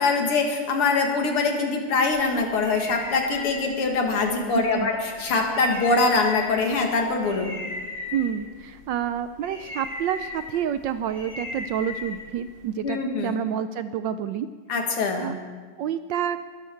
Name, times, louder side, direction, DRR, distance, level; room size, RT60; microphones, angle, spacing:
voice 1, 0.0-7.5 12.8-13.4 14.7-15.3, left 3 dB, 90° left, 2 dB, 2.8 m, -23 dB
sound 1, 2.1-12.7, left 3 dB, 30° left, 2.0 m, -38 dB
voice 2, 4.5-4.9 8.1-14.5 15.2-15.4 15.8-16.4, right 9 dB, 75° right, 11 dB, 1.1 m, -28 dB
21.0 x 13.0 x 4.5 m, 1.5 s
omnidirectional pair, 2.4 m